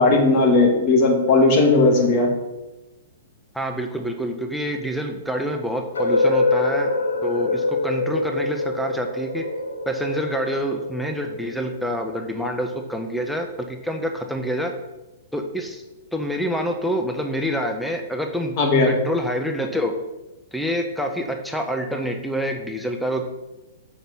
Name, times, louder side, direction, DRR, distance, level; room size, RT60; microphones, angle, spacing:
voice 1, 0.0-2.3 18.6-18.9, left 3 dB, 40° left, 2 dB, 2.1 m, -16 dB
voice 2, 3.5-6.9 7.2-9.4 9.9-14.7 15.3-15.8 16.1-18.5 18.9-19.9 20.5-23.2, equal, ahead, 3 dB, 0.8 m, -27 dB
sound 1, 5.9-11.8, left 2 dB, 80° left, 1.7 m, -24 dB
7.1 x 6.0 x 5.6 m, 1.0 s
hypercardioid pair, 125°, 0 cm